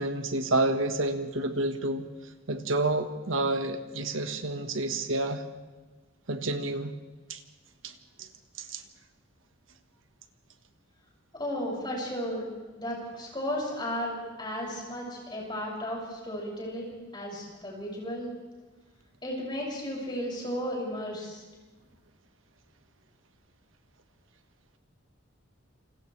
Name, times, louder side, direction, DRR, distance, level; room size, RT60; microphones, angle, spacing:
voice 1, 0.0-2.1 2.5-5.4 6.3-6.9 7.3-7.4 7.8-7.9 8.2-8.3 8.6-8.8, right 2 dB, 75° right, 7 dB, 1.5 m, -29 dB
voice 2, 11.4-12.5 12.7-18.3 19.2-21.4, equal, 20° left, -3 dB, 6.7 m, -34 dB
28.5 x 27.0 x 3.4 m, 1.3 s
head